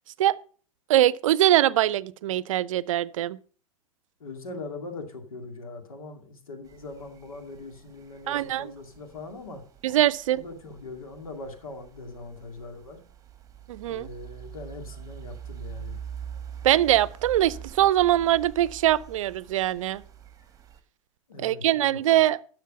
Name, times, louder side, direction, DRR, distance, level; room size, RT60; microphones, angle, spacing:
voice 1, 0.9-3.4 8.3-8.7 9.8-10.4 13.7-14.1 16.6-20.0 21.4-22.4, right 13 dB, 65° right, 0.5 m, -22 dB
voice 2, 4.2-9.6 10.3-13.0 13.8-16.0 21.3-22.0, left 3 dB, 80° left, 2.3 m, -41 dB
sound 1, 6.6-20.8, right 8 dB, 20° right, 1.4 m, -44 dB
12.0 x 6.4 x 5.5 m
hypercardioid pair, 95°, 18 cm